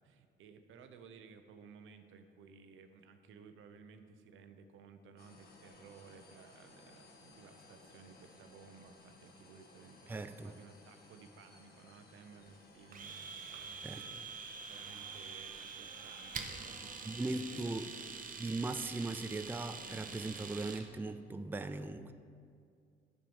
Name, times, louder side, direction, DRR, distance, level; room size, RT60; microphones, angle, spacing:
voice 1, 0.0-18.0, right 5 dB, 80° right, 7 dB, 0.8 m, -57 dB
sound 1, 5.2-20.2, left 3 dB, 50° left, 1.6 m, -61 dB
voice 2, 10.1-10.5 13.8-14.0 17.0-17.9 18.4-22.1, right 2 dB, 10° right, 9 dB, 0.4 m, -39 dB
Domestic sounds home sounds, 12.9-20.9, right 5 dB, 45° right, 1.0 m, -46 dB
sound 2, 14.5-17.4, right 2 dB, 25° right, 1.5 m, -62 dB
7.6 x 6.7 x 7.1 m, 2.3 s
cardioid pair, 90°, 20 cm